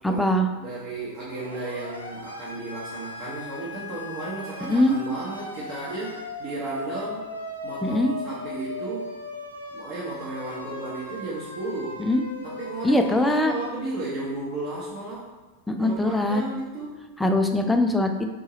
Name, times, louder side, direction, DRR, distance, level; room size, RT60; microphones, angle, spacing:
voice 1, 0.0-0.5 4.7-5.0 7.8-8.1 12.0-12.2 12.8-13.5 15.7-16.4 17.2-18.3, left 1 dB, 5° left, 5 dB, 0.3 m, -22 dB
voice 2, 0.6-6.1 6.4-7.2 7.6-9.1 9.7-12.0 12.4-15.3 15.7-17.0, right 2 dB, 40° right, -7 dB, 0.8 m, -34 dB
Siren, 1.3-13.7, left 1 dB, 85° left, 0.4 m, -38 dB
3.7 x 2.7 x 2.9 m, 1.3 s
figure-of-eight pair, 90°, 0 cm